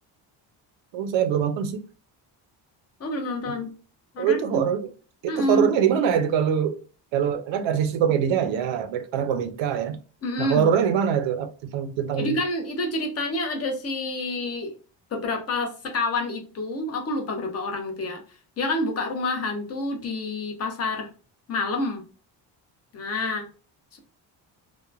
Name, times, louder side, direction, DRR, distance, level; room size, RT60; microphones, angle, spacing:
voice 1, 0.9-1.8 3.5-3.6 4.2-4.9 5.2-6.8 7.1-10.0 10.4-12.4, right 8 dB, 85° right, 0.6 m, -23 dB
voice 2, 3.0-3.7 4.1-4.7 5.3-5.7 10.2-10.7 12.1-14.7 15.1-18.2 18.6-21.1 21.5-22.0 22.9-23.4, left 2 dB, 35° left, 0.7 m, -28 dB
2.9 x 2.2 x 2.3 m
cardioid pair, 150°, 44 cm